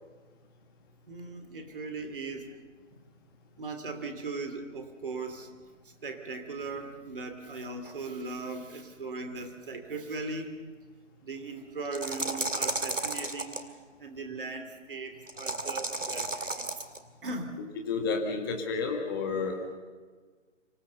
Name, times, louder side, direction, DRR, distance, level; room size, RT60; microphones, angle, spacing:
voice 1, 1.1-2.6 2.9-3.0 3.6-5.5 6.0-10.5 11.2-16.7 17.2-17.6, right 3 dB, 45° right, 6 dB, 2.7 m, -38 dB
sound 1, 11.9-13.6 15.3-17.0, right 2 dB, 90° right, 2.1 m, -33 dB
voice 2, 17.9-19.6, left 4 dB, 20° left, 2 dB, 1.8 m, -30 dB
26.0 x 16.5 x 6.8 m, 1.5 s
figure-of-eight pair, 150°, 37 cm